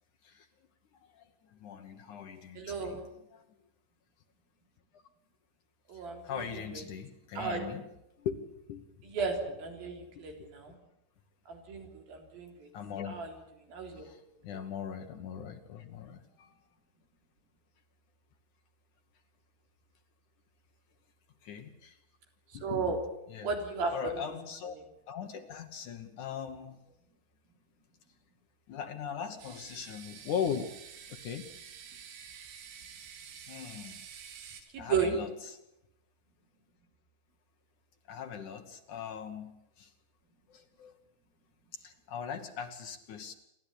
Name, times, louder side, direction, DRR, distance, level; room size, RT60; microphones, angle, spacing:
voice 1, 0.9-3.4 5.9-7.9 8.2-9.1 10.2-10.7 12.7-13.1 13.9-16.7 21.4-22.0 22.5-23.0 23.3-23.5 23.9-24.8 25.1-26.9 28.7-30.7 31.1-31.4 33.5-34.0 34.8-35.6 38.1-39.9 40.5-41.0 41.7-43.3, left 7 dB, 75° left, 6 dB, 1.8 m, -40 dB
voice 2, 2.6-3.1 5.9-6.8 7.4-7.7 9.0-10.8 11.5-12.7 13.1-13.3 13.7-14.1 22.6-23.0 23.4-24.2 34.7-35.1, right 5 dB, 50° right, 3 dB, 5.3 m, -34 dB
sound 1, 29.4-34.6, right 7 dB, 85° right, 4.8 m, -49 dB
29.0 x 12.5 x 10.0 m, 0.86 s
omnidirectional pair, 5.4 m